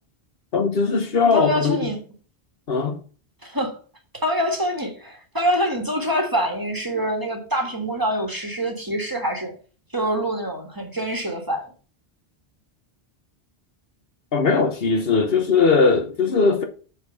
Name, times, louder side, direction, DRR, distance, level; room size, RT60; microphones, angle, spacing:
voice 1, 0.5-1.8 2.7-3.0 14.3-16.6, left 4 dB, 65° left, 1.2 m, -19 dB
voice 2, 1.2-2.0 3.4-3.8 4.1-9.5 9.9-11.6, equal, 20° right, 1.7 m, -25 dB
7.4 x 4.6 x 6.9 m
omnidirectional pair, 1.1 m